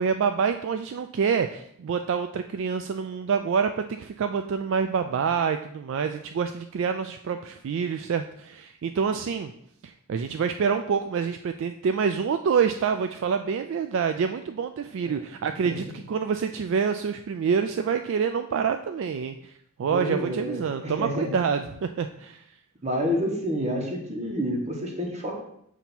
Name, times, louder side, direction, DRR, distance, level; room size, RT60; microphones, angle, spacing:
voice 1, 0.0-9.5 9.8-19.5 19.8-22.4, right 6 dB, 60° right, 7 dB, 0.3 m, -27 dB
voice 2, 19.9-21.5 22.8-25.4, equal, 30° right, 1 dB, 1.2 m, -29 dB
7.1 x 2.8 x 5.9 m, 0.71 s
head